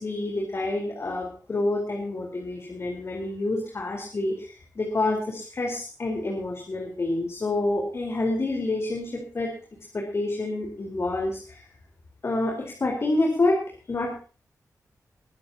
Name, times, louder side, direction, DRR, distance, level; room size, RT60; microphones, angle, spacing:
voice 1, 0.0-9.5 9.9-11.6 12.2-14.2, left 2 dB, 40° left, 2 dB, 4.4 m, -28 dB
22.0 x 14.5 x 3.0 m, 0.38 s
wide cardioid pair, 120°, 6 cm